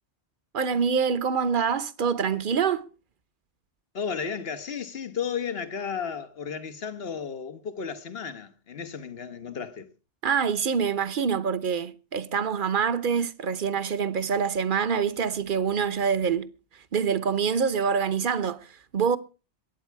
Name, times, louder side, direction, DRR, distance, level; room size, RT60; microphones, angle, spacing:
voice 1, 0.5-2.8 10.2-16.5 16.9-19.2, right 6 dB, 50° right, 1.0 m, -25 dB
voice 2, 3.9-9.9, left 6 dB, 60° left, 1.5 m, -33 dB
22.5 x 9.3 x 4.7 m
omnidirectional pair, 1.2 m